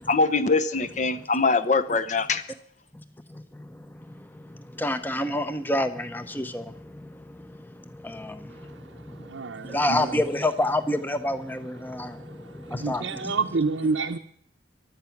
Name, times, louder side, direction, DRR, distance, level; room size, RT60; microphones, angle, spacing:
voice 1, 0.1-2.4, left 4 dB, 40° left, 0.8 m, -23 dB
voice 2, 3.3-13.4 13.8-13.9, left 1 dB, 10° left, 0.8 m, -30 dB
voice 3, 9.2-10.1 12.3-14.2, right 4 dB, 75° right, 0.7 m, -29 dB
15.0 x 11.5 x 5.9 m
head